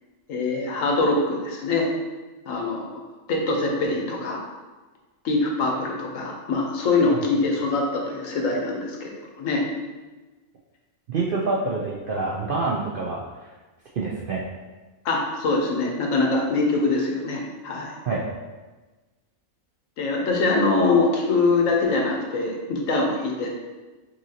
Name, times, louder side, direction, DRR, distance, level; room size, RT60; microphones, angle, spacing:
voice 1, 0.3-1.9 2.5-2.9 3.3-4.4 5.2-9.1 9.4-9.6 15.0-17.9 20.0-23.5, left 3 dB, 75° left, 0 dB, 1.1 m, -23 dB
voice 2, 11.1-13.2 14.0-14.5 18.0-18.2, right 3 dB, 65° right, -4 dB, 0.5 m, -26 dB
5.5 x 2.8 x 2.8 m, 1.2 s
omnidirectional pair, 1.4 m